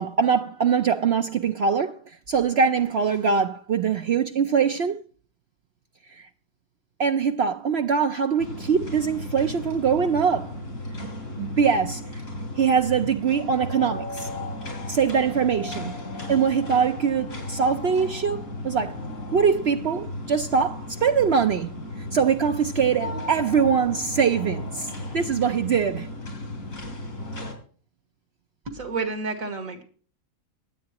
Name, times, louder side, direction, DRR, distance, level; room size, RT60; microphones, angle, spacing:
voice 1, 0.0-5.0 6.1-6.3 7.0-10.5 11.0-11.1 11.4-12.2 12.6-14.3 14.9-15.9 16.3-19.0 19.3-21.8 22.1-26.1, right 6 dB, 60° right, 0.8 m, -23 dB
sound 1, 8.4-27.5, left 1 dB, 85° left, 4.3 m, -35 dB
voice 2, 28.7-29.8, right 4 dB, 75° right, 2.2 m, -30 dB
23.0 x 8.5 x 3.0 m
omnidirectional pair, 1.4 m